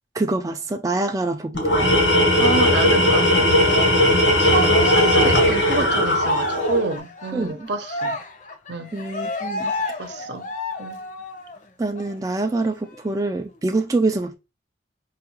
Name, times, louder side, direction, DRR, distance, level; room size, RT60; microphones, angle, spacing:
voice 1, 0.1-1.9 7.3-7.7 8.9-9.7 11.8-14.3, right 2 dB, 20° right, 0.3 m, -25 dB
Tools, 1.5-6.9, left 1 dB, 90° left, 1.1 m, -18 dB
voice 2, 2.4-3.3 4.4-8.2 8.7-8.9 10.0-10.5 10.8-11.0, right 4 dB, 70° right, 0.6 m, -27 dB
Cheering, 3.6-11.6 11.9-12.1 12.5-13.5, left 2 dB, 40° left, 0.7 m, -31 dB
4.7 x 2.3 x 2.9 m
head